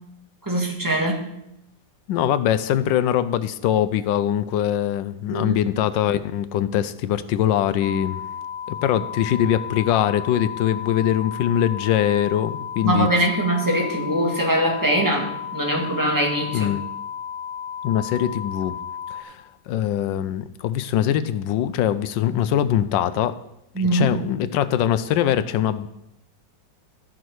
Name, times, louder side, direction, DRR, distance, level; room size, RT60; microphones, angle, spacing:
voice 1, 0.4-1.3 5.3-5.6 12.8-16.7 23.7-24.2, right 1 dB, 10° right, 0 dB, 1.5 m, -22 dB
voice 2, 2.1-8.2 8.7-13.1 16.5-16.9 17.8-18.8 19.1-23.4 23.8-25.9, left 10 dB, 85° left, 13 dB, 1.3 m, -22 dB
sound 1, 7.8-19.2, left 8 dB, 25° left, 0.6 m, -33 dB
14.0 x 6.0 x 4.7 m, 0.83 s
omnidirectional pair, 2.0 m